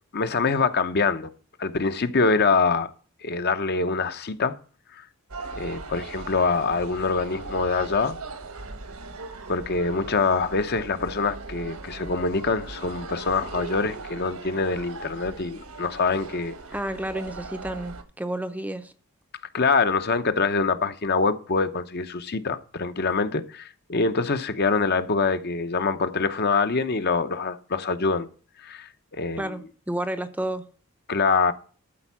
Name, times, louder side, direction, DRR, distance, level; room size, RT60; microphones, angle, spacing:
voice 1, 0.1-1.3 1.6-2.9 3.2-4.6 4.9-5.0 5.6-8.2 9.5-16.5 19.5-28.3 28.6-29.5 31.1-31.5, left 4 dB, 45° left, 0.8 m, -24 dB
sound 1, 5.3-18.0, right 3 dB, 80° right, 1.4 m, -39 dB
voice 2, 16.7-18.9 29.4-30.6, right 1 dB, 5° right, 0.6 m, -31 dB
13.0 x 4.5 x 7.3 m
head